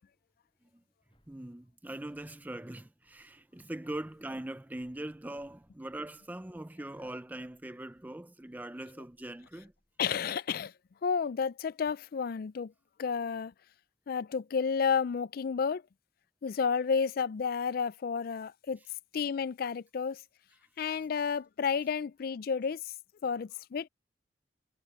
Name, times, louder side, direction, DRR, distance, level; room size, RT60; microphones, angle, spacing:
sound 1, 1.1-10.2, equal, 25° left, 6.9 m, -75 dB
voice 1, 1.3-9.7, right 1 dB, 10° right, 0.4 m, -41 dB
voice 2, 10.0-10.7 11.0-12.7 13.0-13.5 14.1-15.8 16.4-18.8 19.1-20.2 20.8-22.9 23.2-23.9, left 6 dB, 50° left, 0.4 m, -31 dB
head